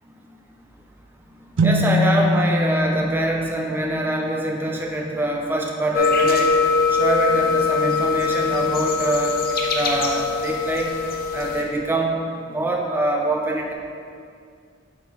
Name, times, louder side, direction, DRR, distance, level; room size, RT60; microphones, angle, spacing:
voice 1, 1.6-6.5 6.9-9.4 9.7-10.9 11.3-12.1 12.5-13.7, right 1 dB, 10° right, 0 dB, 0.6 m, -24 dB
sound 1, 1.6-5.1, equal, 75° right, 0.4 m, -24 dB
sound 2, 5.9-11.6, left 5 dB, 55° left, 0.8 m, -22 dB
8.8 x 5.0 x 3.1 m, 2.3 s
head